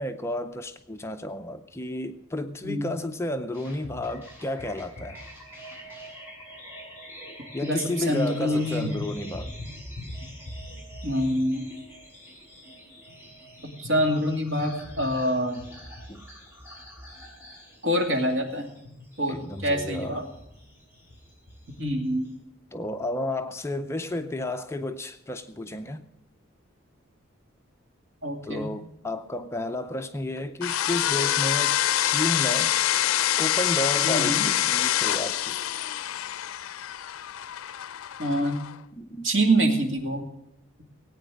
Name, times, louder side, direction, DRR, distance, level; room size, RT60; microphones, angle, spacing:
voice 1, 0.0-5.2 7.5-9.5 16.1-16.3 19.3-20.2 22.7-26.1 28.4-32.8 33.4-35.7 39.0-39.3, left 1 dB, 15° left, 7 dB, 0.5 m, -32 dB
sound 1, 3.5-22.3, equal, 10° right, 5.3 m, -43 dB
voice 2, 7.6-8.9 11.0-11.6 13.8-15.6 17.8-18.7 19.2-20.2 21.8-22.3 28.2-28.7 34.0-34.5 38.2-38.5 39.2-40.2, equal, 60° right, 2 dB, 2.5 m, -25 dB
sound 2, 30.6-38.7, left 12 dB, 85° left, 0.4 m, -26 dB
18.0 x 9.0 x 6.3 m, 0.82 s
head